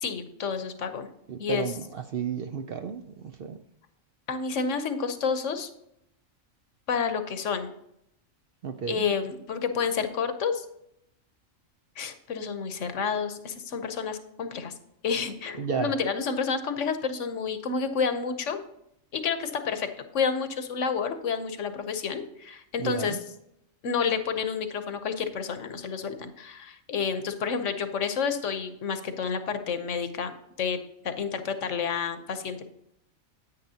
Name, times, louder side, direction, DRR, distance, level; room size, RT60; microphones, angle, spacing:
voice 1, 0.0-1.1 1.4-1.6 4.3-5.7 6.9-7.7 8.9-10.6 12.0-14.7 15.0-18.6 19.1-23.2 23.8-30.3 30.6-30.8 31.0-32.6, left 6 dB, 70° left, 8 dB, 1.2 m, -29 dB
voice 2, 1.3-3.6 8.6-9.0 15.6-16.0 22.8-23.2, right 7 dB, 60° right, 7 dB, 0.6 m, -32 dB
9.6 x 9.1 x 2.8 m, 0.78 s
omnidirectional pair, 1.4 m